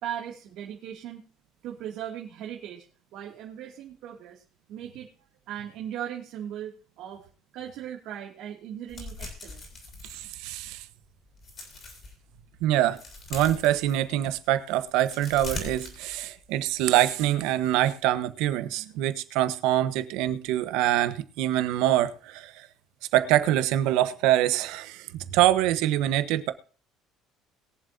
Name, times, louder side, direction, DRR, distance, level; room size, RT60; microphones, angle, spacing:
voice 1, 0.0-1.2 1.6-2.8 3.1-4.4 4.7-5.1 5.5-7.2 7.5-9.8, right 10 dB, 60° right, 2.4 m, -38 dB
sound 1, 8.9-10.8 11.3-12.1 12.6-14.4 14.8-16.6 16.9-17.0, left 2 dB, 30° left, 4.8 m, -41 dB
voice 2, 10.1-10.8 12.6-13.0 13.3-22.7 23.1-26.5, right 13 dB, 80° right, 1.1 m, -25 dB
22.0 x 7.5 x 2.8 m
cardioid pair, 160°, 0 cm